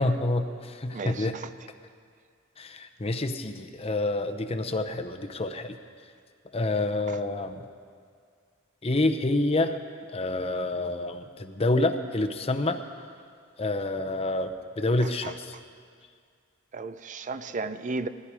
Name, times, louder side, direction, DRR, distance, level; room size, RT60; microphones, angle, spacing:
voice 1, 0.0-1.4 2.6-5.8 6.5-7.6 8.8-9.8 10.1-12.8 13.6-15.5, left 2 dB, 30° left, 0.7 m, -28 dB
voice 2, 0.9-1.4 15.2-15.3 16.7-18.1, right 3 dB, 40° right, 0.5 m, -34 dB
18.5 x 14.0 x 4.9 m
head